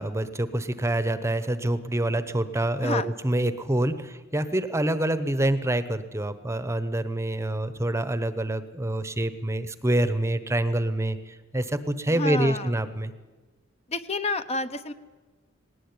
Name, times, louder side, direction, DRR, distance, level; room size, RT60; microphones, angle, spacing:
voice 1, 0.0-13.1, right 1 dB, 15° right, 12 dB, 1.0 m, -26 dB
voice 2, 12.1-12.7 13.9-14.9, left 3 dB, 30° left, 10 dB, 1.0 m, -29 dB
19.0 x 19.0 x 9.7 m, 1.3 s
head